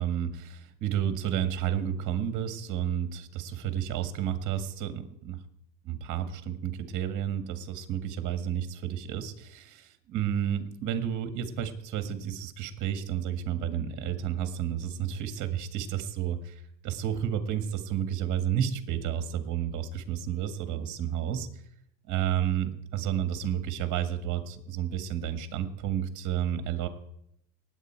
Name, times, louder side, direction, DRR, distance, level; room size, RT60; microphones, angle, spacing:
voice 1, 0.0-5.4 5.8-21.5 22.1-26.9, right 10 dB, 40° right, 9 dB, 1.7 m, -31 dB
19.0 x 8.3 x 4.5 m, 0.73 s
supercardioid pair, 140°, 47 cm